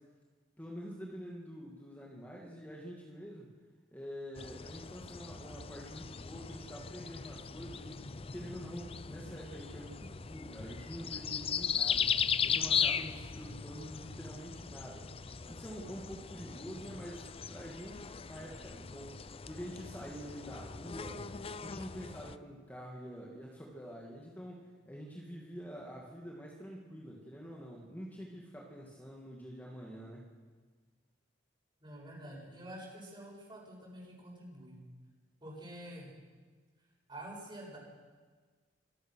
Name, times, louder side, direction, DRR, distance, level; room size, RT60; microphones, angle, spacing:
voice 1, 0.6-3.5 3.9-12.1 12.4-15.1 15.5-19.2 19.5-21.2 21.6-30.3, equal, 10° left, -3 dB, 2.4 m, -46 dB
sound 1, 4.4-22.4, left 7 dB, 30° left, 0.5 m, -38 dB
voice 2, 16.7-17.0 31.8-34.8 35.4-36.1 37.1-37.8, right 1 dB, 25° right, -2 dB, 7.8 m, -48 dB
25.5 x 17.5 x 6.5 m, 1.5 s
head